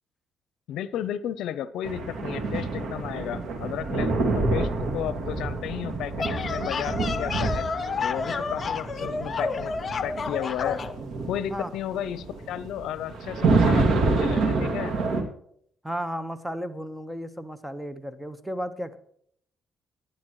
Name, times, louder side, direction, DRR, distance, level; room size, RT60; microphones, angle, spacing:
voice 1, 0.7-7.7 8.0-9.7 10.0-10.8 11.3-15.0, left 10 dB, 85° left, 15 dB, 0.6 m, -33 dB
sound 1, 1.8-15.2, right 3 dB, 75° right, 2.2 m, -27 dB
sound 2, 6.0-11.0, left 4 dB, 40° left, 1.0 m, -30 dB
voice 2, 15.8-19.0, equal, 5° right, 12 dB, 1.1 m, -34 dB
18.5 x 11.5 x 3.1 m, 0.66 s
cardioid pair, 90°, 0 cm